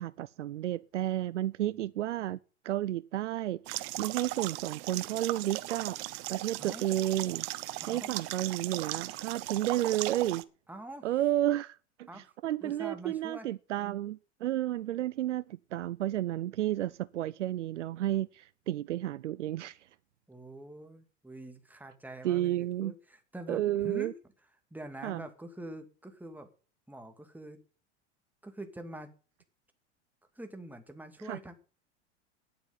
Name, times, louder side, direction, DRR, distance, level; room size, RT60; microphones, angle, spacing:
voice 1, 0.0-2.4 2.6-6.0 6.3-7.5 7.9-10.4 11.0-19.8 22.2-22.9 23.5-24.1 25.0-25.2 31.3-31.4, right 13 dB, 85° right, 0.5 m, -32 dB
sound 1, 3.7-10.4, right 18 dB, 60° right, 1.0 m, -37 dB
voice 2, 6.6-6.9 7.8-8.2 10.7-11.1 12.1-12.3 12.6-13.5 20.3-24.1 24.7-26.5 26.9-27.6 28.4-29.1 30.4-31.5, right 1 dB, 5° right, 2.3 m, -45 dB
9.9 x 7.8 x 8.8 m
hypercardioid pair, 90°, 35 cm